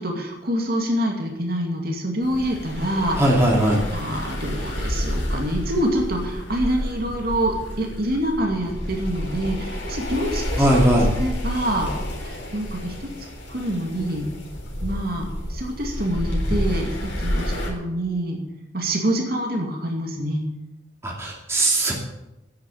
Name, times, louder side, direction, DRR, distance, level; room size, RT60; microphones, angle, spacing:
voice 1, 0.0-3.3 3.9-11.9 12.2-13.1 13.5-14.3 14.8-18.4 18.7-20.4, right 1 dB, 50° right, 1 dB, 2.5 m, -26 dB
sound 1, 2.2-17.7, left 1 dB, 85° left, 4.0 m, -29 dB
voice 2, 3.2-3.8 10.6-11.1 21.0-21.9, right 1 dB, 15° right, -2 dB, 2.5 m, -19 dB
10.5 x 9.0 x 8.6 m, 0.94 s
head